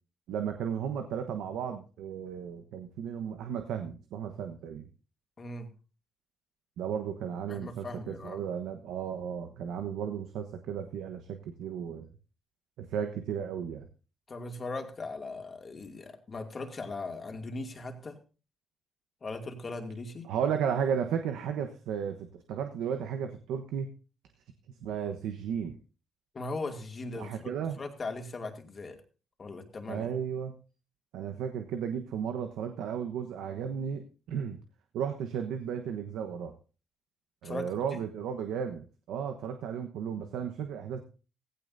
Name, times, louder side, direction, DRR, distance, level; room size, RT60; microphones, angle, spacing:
voice 1, 0.3-4.9 6.8-12.1 12.8-13.9 20.2-23.9 24.8-25.7 27.2-27.8 29.9-30.5 31.1-34.6 34.9-36.5 37.4-41.0, right 8 dB, 90° right, 6 dB, 1.1 m, -34 dB
voice 2, 5.4-5.7 7.5-8.4 14.3-18.2 19.2-20.3 26.3-29.0 29.4-30.1 37.4-38.0, left 3 dB, 35° left, 4 dB, 2.4 m, -39 dB
16.0 x 15.5 x 2.7 m, 0.36 s
cardioid pair, 90°, 0 cm